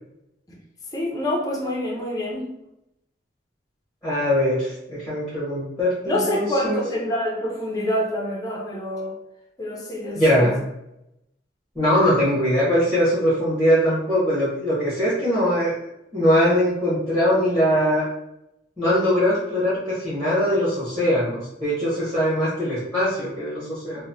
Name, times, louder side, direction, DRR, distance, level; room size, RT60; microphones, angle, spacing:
voice 1, 0.9-2.5 6.1-9.2 9.6-10.5, left 1 dB, 20° left, -2 dB, 0.5 m, -26 dB
voice 2, 4.0-6.8 10.1-10.6 11.7-15.7 16.1-18.0 18.8-24.1, equal, ahead, -11 dB, 1.0 m, -21 dB
2.9 x 2.0 x 2.6 m, 0.84 s
head